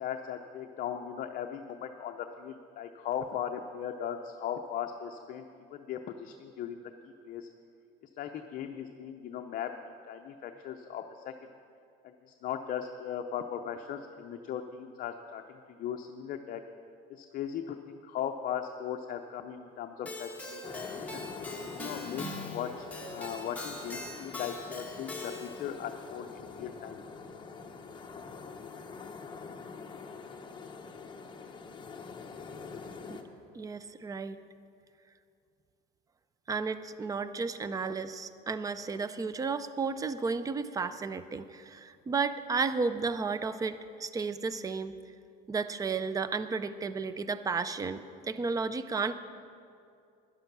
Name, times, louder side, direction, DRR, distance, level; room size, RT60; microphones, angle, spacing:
voice 1, 0.0-6.9 7.3-7.5 8.0-11.3 12.0-16.6 17.1-20.7 20.9-21.3 21.8-27.0, left 9 dB, 45° left, 5 dB, 0.6 m, -38 dB
Keyboard (musical), 20.1-25.7, left 2 dB, 5° left, 1.7 m, -42 dB
sound 1, 20.6-33.2, left 5 dB, 25° left, 1.0 m, -45 dB
voice 2, 33.5-34.4 36.5-45.0 45.5-49.1, right 4 dB, 15° right, 13 dB, 0.5 m, -33 dB
12.5 x 10.5 x 6.0 m, 2.5 s
cardioid pair, 130°, 20 cm